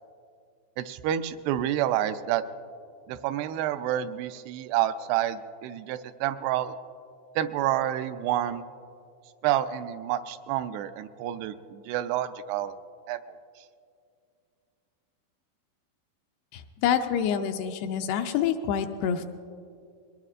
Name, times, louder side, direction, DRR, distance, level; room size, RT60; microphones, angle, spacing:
voice 1, 0.8-2.5 3.1-6.7 7.4-8.6 9.4-12.7 13.1-13.2, right 12 dB, 85° right, 11 dB, 2.5 m, -28 dB
voice 2, 16.5-19.2, left 8 dB, 85° left, 5 dB, 2.5 m, -27 dB
22.0 x 19.0 x 2.5 m, 2.3 s
omnidirectional pair, 4.8 m